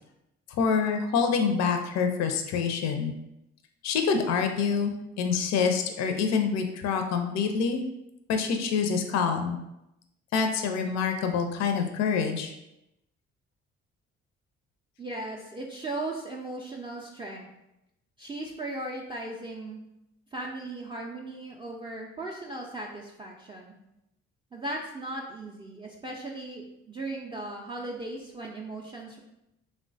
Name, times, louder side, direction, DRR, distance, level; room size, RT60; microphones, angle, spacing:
voice 1, 0.5-3.1 3.8-7.8 8.3-9.6 10.3-12.5, left 6 dB, 55° left, 5 dB, 0.4 m, -26 dB
voice 2, 15.0-17.5 18.2-19.8 20.3-23.8 24.5-29.2, right 2 dB, 15° right, -2 dB, 0.3 m, -37 dB
3.1 x 2.1 x 2.6 m, 0.87 s
hypercardioid pair, 50°, 32 cm